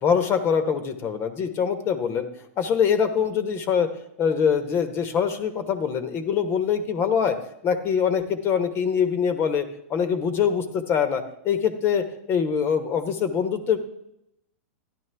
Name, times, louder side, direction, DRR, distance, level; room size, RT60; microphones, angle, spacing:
voice 1, 0.0-2.3 2.6-3.9 4.2-7.4 7.6-9.6 9.9-13.8, left 7 dB, 30° left, 9 dB, 1.0 m, -23 dB
12.5 x 10.5 x 3.4 m, 0.79 s
hypercardioid pair, 125°, 8 cm